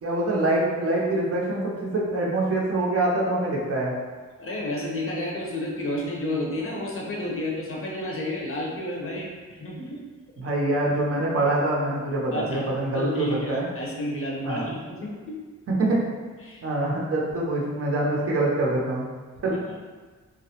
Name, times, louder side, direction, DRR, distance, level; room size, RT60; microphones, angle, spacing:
voice 1, 0.0-3.9 10.4-13.7 14.4-14.7 15.7-16.0 16.6-19.1 19.4-19.6, right 2 dB, 50° right, -4 dB, 0.6 m, -25 dB
voice 2, 4.4-10.0 12.3-12.7 12.9-15.3 16.4-16.6 19.5-19.8, left 1 dB, 45° left, -3 dB, 0.6 m, -31 dB
2.3 x 2.0 x 2.7 m, 1.4 s
wide cardioid pair, 105°, 30 cm